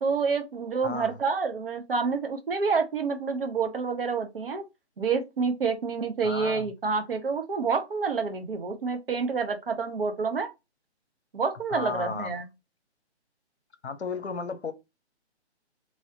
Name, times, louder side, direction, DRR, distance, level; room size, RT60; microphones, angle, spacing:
voice 1, 0.0-4.6 5.0-10.5 11.3-12.4, right 5 dB, 55° right, 0.8 m, -28 dB
voice 2, 0.8-1.2 6.2-6.7 11.7-12.3 13.8-14.7, left 5 dB, 70° left, 0.7 m, -34 dB
3.1 x 2.8 x 2.7 m
figure-of-eight pair, 140°, 34 cm